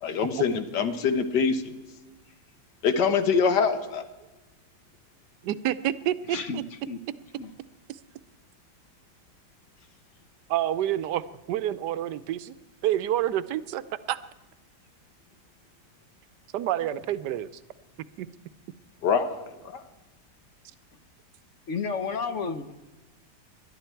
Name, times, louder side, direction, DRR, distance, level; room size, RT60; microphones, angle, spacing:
voice 1, 0.0-1.7 2.8-4.0 19.0-19.8, left 6 dB, 80° left, 9 dB, 1.7 m, -24 dB
voice 2, 5.4-6.6 10.5-12.5 12.8-14.2 16.5-17.5 18.2-18.3, right 12 dB, 80° right, 15 dB, 1.2 m, -28 dB
voice 3, 6.3-7.0 7.4-7.5 21.7-22.7, left 5 dB, 55° left, 10 dB, 1.1 m, -32 dB
20.5 x 11.5 x 4.5 m, 1.1 s
omnidirectional pair, 1.8 m